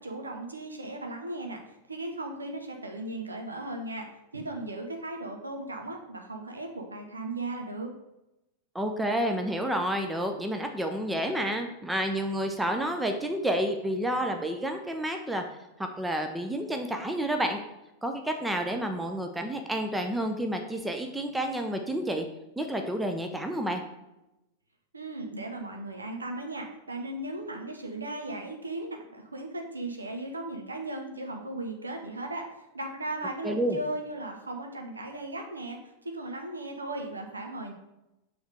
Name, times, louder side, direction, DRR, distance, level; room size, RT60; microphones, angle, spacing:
voice 1, 0.0-1.6 1.9-4.1 4.3-7.9 24.9-32.4 32.7-37.7, right 2 dB, 80° right, 3 dB, 0.7 m, -37 dB
voice 2, 8.7-15.4 16.0-17.6 18.0-22.3 22.6-23.8 33.4-33.8, right 1 dB, 5° right, 4 dB, 0.6 m, -30 dB
6.4 x 3.4 x 4.7 m, 0.93 s
figure-of-eight pair, 90°, 0 cm